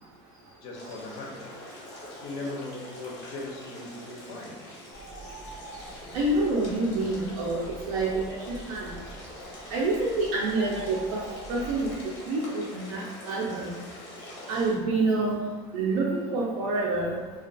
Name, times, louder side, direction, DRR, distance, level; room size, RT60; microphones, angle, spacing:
voice 1, 0.3-1.4 2.2-4.6, left 2 dB, 45° left, -1 dB, 0.5 m, -39 dB
sound 1, 0.7-14.7, left 1 dB, 90° left, 0.8 m, -44 dB
Bird, 4.9-12.0, right 3 dB, 25° right, 0.6 m, -45 dB
voice 2, 6.1-8.4 8.7-8.9 9.7-11.2 11.5-11.9 12.3-13.7 14.5-15.4 15.7-17.1, right 2 dB, 75° right, -5 dB, 0.4 m, -27 dB
2.2 x 2.2 x 2.5 m, 1.3 s
cardioid pair, 170°, 14 cm